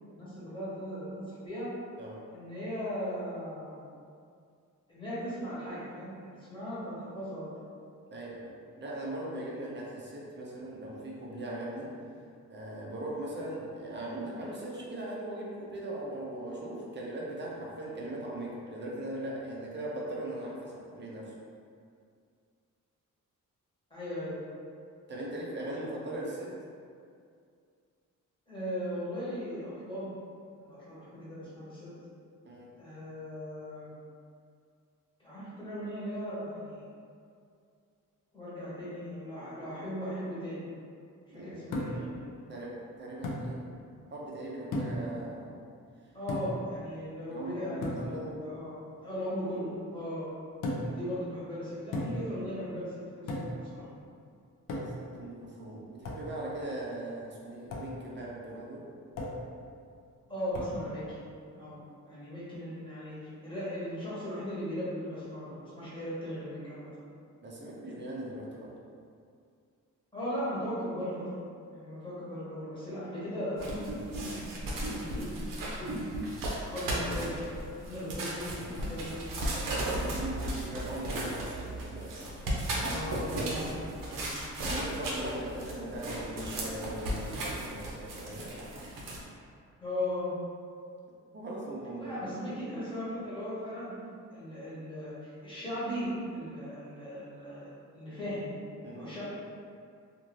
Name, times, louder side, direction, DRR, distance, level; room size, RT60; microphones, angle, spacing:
voice 1, 0.1-1.7 2.3-3.8 4.9-7.5 23.9-24.4 28.5-30.1 30.6-31.9 32.8-33.9 35.2-36.8 38.3-40.7 41.3-42.3 46.1-50.3 50.8-53.8 60.3-61.2 61.5-61.8 62.0-66.9 70.1-71.3 71.7-73.7 74.2-75.4 75.7-76.3 76.7-77.4 77.8-79.3 79.9-80.7 82.8-83.9 84.2-84.4 89.8-90.3 92.0-93.9 94.3-98.5 98.9-99.2, equal, 15° left, -11 dB, 1.0 m, -38 dB
voice 2, 8.1-11.9 12.5-21.3 25.1-26.5 32.4-32.7 41.3-41.6 42.5-43.6 44.1-45.6 47.3-48.3 55.0-58.9 67.4-68.7 79.7-82.2 84.7-88.6 89.1-89.3 91.3-92.2 98.8-99.1, right 1 dB, 35° right, -4 dB, 0.5 m, -39 dB
sound 1, 41.7-42.1 43.2-43.5 44.7-45.1 46.3-46.7 47.8-48.1 50.6-51.0 51.9-52.3 53.3-53.6 54.7-55.1 56.0-56.3 57.7-57.9 59.2-59.5 60.5-60.8, left 1 dB, 80° left, 0.5 m, -35 dB
sound 2, 73.6-89.2, right 1 dB, 85° right, 0.7 m, -35 dB
2.6 x 2.5 x 3.1 m, 2.3 s
wide cardioid pair, 165°, 32 cm